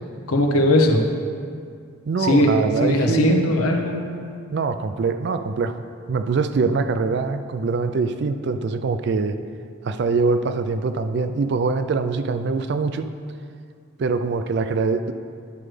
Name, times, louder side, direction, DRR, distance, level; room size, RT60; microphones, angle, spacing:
voice 1, 0.3-1.1 2.2-4.1, left 1 dB, 90° left, 3 dB, 0.9 m, -19 dB
voice 2, 2.1-3.5 4.5-5.7 6.1-9.4 9.8-13.1 14.0-15.1, right 4 dB, 50° right, 10 dB, 0.3 m, -23 dB
10.5 x 6.1 x 3.3 m, 2.2 s
head